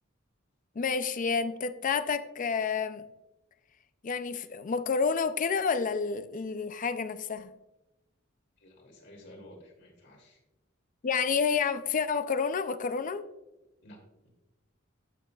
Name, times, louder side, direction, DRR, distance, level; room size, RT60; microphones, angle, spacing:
voice 1, 0.8-3.0 4.0-7.5 11.0-13.2, left 5 dB, 40° left, 12 dB, 0.4 m, -29 dB
voice 2, 8.6-10.4 13.8-14.0, left 1 dB, 60° left, 0 dB, 2.9 m, -52 dB
14.5 x 6.7 x 2.4 m, 0.98 s
head